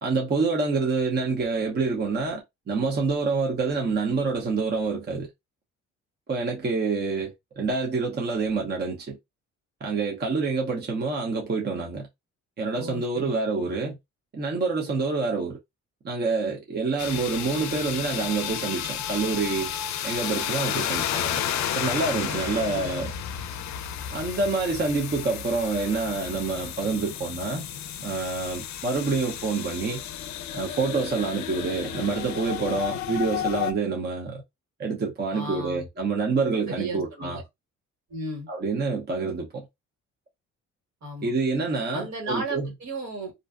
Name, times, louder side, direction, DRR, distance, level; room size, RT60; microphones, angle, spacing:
voice 1, 0.0-5.3 6.3-9.2 9.8-12.1 12.6-14.0 14.3-15.6 16.0-19.7 20.0-21.4 21.7-23.1 24.1-27.6 28.0-30.0 30.5-34.4 34.8-37.4 38.5-39.7 41.2-42.7, right 4 dB, 35° right, 0.7 m, -27 dB
voice 2, 12.8-13.3 22.3-23.0 35.3-35.8 36.7-37.4 38.1-38.5 41.0-41.3 41.9-43.3, right 1 dB, 65° right, 1.6 m, -35 dB
sound 1, 17.0-33.7, left 10 dB, 65° left, 0.5 m, -32 dB
2.6 x 2.1 x 2.4 m
cardioid pair, 90°, 30 cm